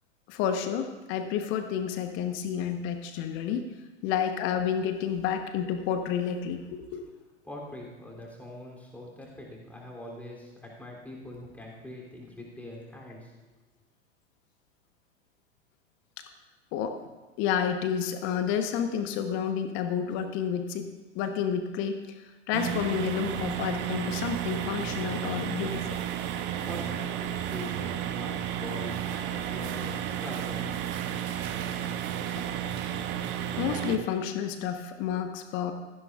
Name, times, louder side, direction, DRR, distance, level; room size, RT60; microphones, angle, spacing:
voice 1, 0.3-3.7 4.0-7.0 16.2-16.3 16.7-17.0 17.4-26.0 33.6-35.7, left 8 dB, 35° left, 7 dB, 1.0 m, -30 dB
voice 2, 7.4-13.3 26.6-30.7, left 1 dB, 5° left, -2 dB, 3.0 m, -43 dB
sound 1, 22.5-34.0, right 9 dB, 35° right, 1.0 m, -32 dB
16.5 x 14.5 x 2.4 m, 1.2 s
figure-of-eight pair, 90°, 34 cm